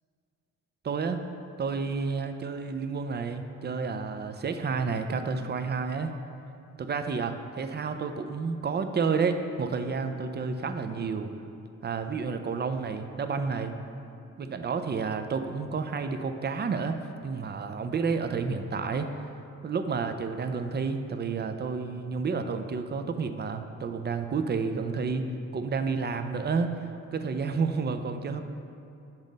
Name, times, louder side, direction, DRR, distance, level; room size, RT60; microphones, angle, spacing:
voice 1, 0.8-1.2 1.6-6.1 6.8-11.3 11.8-13.7 14.4-17.0 17.2-19.1 19.6-25.2 25.5-26.7 27.1-28.4, right 5 dB, 35° right, 8 dB, 0.5 m, -30 dB
7.2 x 3.9 x 5.3 m, 2.6 s
cardioid pair, 65°, 31 cm